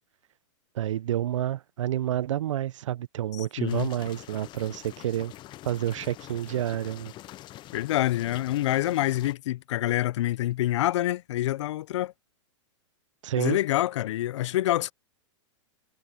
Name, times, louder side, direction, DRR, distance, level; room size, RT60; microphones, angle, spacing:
voice 1, 0.7-5.3 5.6-7.1 13.2-13.6, right 12 dB, 75° right, 0.7 m, -29 dB
voice 2, 3.3-3.9 7.7-12.1 13.4-14.9, left 14 dB, 65° left, 0.7 m, -26 dB
sound 1, 3.7-9.3, left 15 dB, 30° left, 0.6 m, -45 dB
hypercardioid pair, 120°, 16 cm